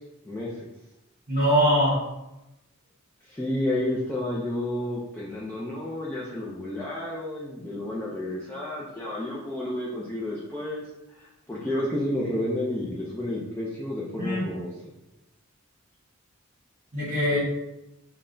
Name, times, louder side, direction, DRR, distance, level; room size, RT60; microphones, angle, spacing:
voice 1, 0.2-0.7 3.2-10.8 11.1-14.7, left 1 dB, 10° left, -7 dB, 0.4 m, -31 dB
voice 2, 1.3-2.0 14.2-14.5 16.9-17.4, equal, 40° right, -7 dB, 1.1 m, -22 dB
5.4 x 2.2 x 2.6 m, 0.95 s
head